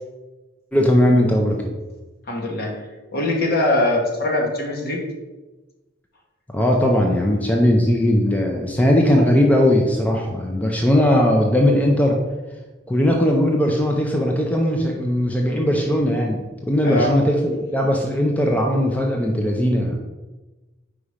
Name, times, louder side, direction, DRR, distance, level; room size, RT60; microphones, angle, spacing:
voice 1, 0.7-1.7 6.5-12.2 12.9-20.0, left 1 dB, 10° left, 0 dB, 0.5 m, -19 dB
voice 2, 2.3-2.7 3.1-5.0 16.8-17.1, left 1 dB, 55° left, 0 dB, 1.2 m, -21 dB
4.9 x 4.2 x 4.9 m, 1.2 s
head